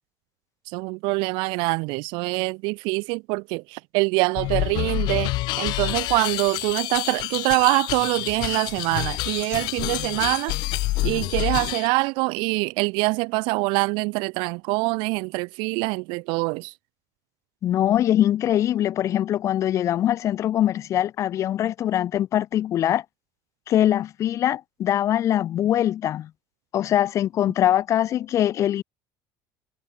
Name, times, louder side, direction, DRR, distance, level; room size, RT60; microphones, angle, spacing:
voice 1, 0.7-10.6 11.0-16.7, right 28 dB, 80° right, 6.0 m, -24 dB
sound 1, 4.4-11.9, left 19 dB, 60° left, 5.7 m, -28 dB
voice 2, 17.6-23.0 23.7-26.3 26.7-28.8, left 11 dB, 40° left, 1.8 m, -22 dB
cardioid pair, 170°, 8 cm